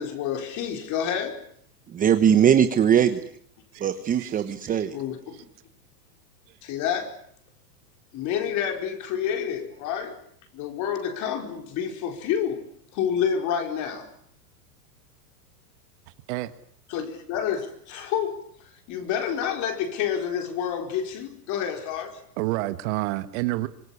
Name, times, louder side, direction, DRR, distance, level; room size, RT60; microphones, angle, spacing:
voice 1, 0.0-1.4 4.9-5.4 6.6-7.1 8.1-10.2 10.5-12.7 12.9-14.1 16.9-18.5 18.9-22.2, left 8 dB, 35° left, 4.8 m, -28 dB
voice 2, 1.9-3.2 3.8-5.0, right 8 dB, 15° right, 1.1 m, -20 dB
voice 3, 4.1-4.8 16.3-16.5 22.4-23.7, right 18 dB, 45° right, 1.6 m, -29 dB
25.5 x 20.0 x 9.9 m
supercardioid pair, 145°, 47 cm